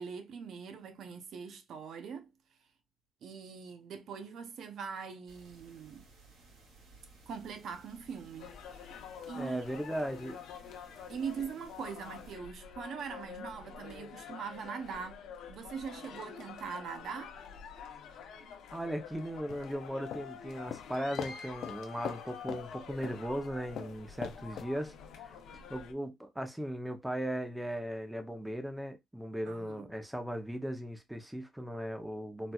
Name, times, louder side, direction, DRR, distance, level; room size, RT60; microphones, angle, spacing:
voice 1, 0.0-2.3 3.2-6.1 7.3-8.9 9.3-9.7 11.1-17.4 29.4-29.9, right 6 dB, 65° right, 0.6 m, -42 dB
sound 1, 5.3-12.4, right 2 dB, 80° right, 2.4 m, -59 dB
sound 2, 8.4-25.9, left 7 dB, 85° left, 0.8 m, -48 dB
voice 2, 9.3-10.4 18.7-25.4 25.7-32.5, equal, 5° right, 0.6 m, -37 dB
sound 3, 19.5-20.2 20.7-20.9 21.2-21.4 21.6-21.8 22.0-22.2 22.5-22.6 23.0-23.2 23.8-24.7, left 9 dB, 65° left, 0.4 m, -39 dB
4.2 x 2.3 x 2.3 m
cardioid pair, 120°, 0 cm